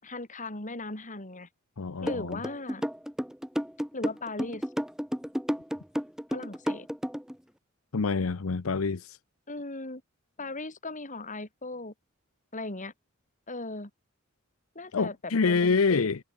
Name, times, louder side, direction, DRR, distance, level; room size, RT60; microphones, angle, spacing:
voice 1, 0.0-1.5 2.0-2.8 3.9-4.6 6.3-6.9 9.5-10.0 10.4-11.9 12.5-12.9 13.5-13.9 14.7-16.1, left 2 dB, 40° left, 5.2 m, -37 dB
voice 2, 1.8-2.4 7.9-9.2 14.9-16.2, left 4 dB, 85° left, 0.7 m, -26 dB
sound 1, 2.1-7.3, equal, 5° right, 3.3 m, -31 dB
head